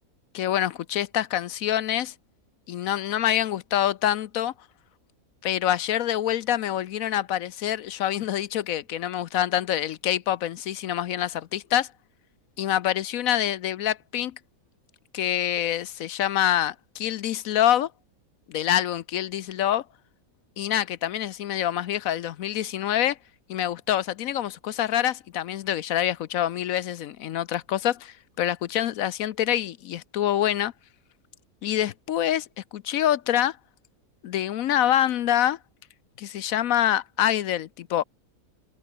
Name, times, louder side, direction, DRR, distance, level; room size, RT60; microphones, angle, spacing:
voice 1, 0.3-2.1 2.7-4.5 5.4-11.9 12.6-14.4 15.1-17.9 18.5-19.8 20.6-23.2 23.5-30.7 31.6-33.6 34.2-35.6 36.2-38.0, left 11 dB, 70° left, 1.1 m, -26 dB
omnidirectional pair, 1.6 m